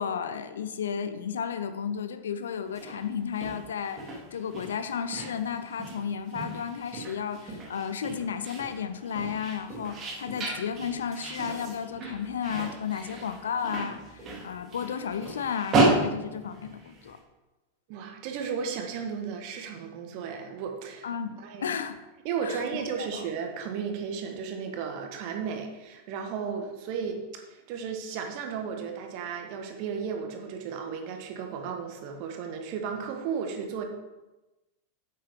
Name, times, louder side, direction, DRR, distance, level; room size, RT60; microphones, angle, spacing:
voice 1, 0.0-17.2 21.0-22.0 22.4-22.6 23.0-23.2, left 7 dB, 65° left, 10 dB, 0.7 m, -33 dB
Soldier steps, 2.7-17.1, right 2 dB, 30° right, 2.8 m, -33 dB
voice 2, 17.9-21.1 21.4-21.7 22.2-33.8, right 6 dB, 45° right, 3 dB, 1.5 m, -34 dB
8.7 x 8.4 x 3.8 m, 1.1 s
figure-of-eight pair, 90°, 0 cm